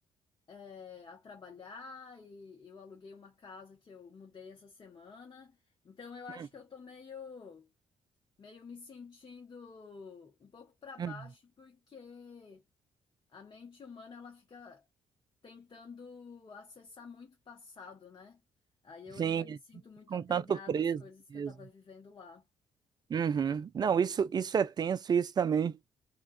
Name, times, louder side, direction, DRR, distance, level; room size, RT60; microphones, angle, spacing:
voice 1, 0.5-5.6 5.8-7.7 8.4-12.6 13.3-14.8 15.4-18.4 18.8-22.5, left 5 dB, 35° left, 0.7 m, -50 dB
voice 2, 19.2-19.6 20.1-21.0 21.3-21.5 23.1-25.8, right 7 dB, 35° right, 0.3 m, -30 dB
2.3 x 2.1 x 2.5 m
hypercardioid pair, 45°, 12 cm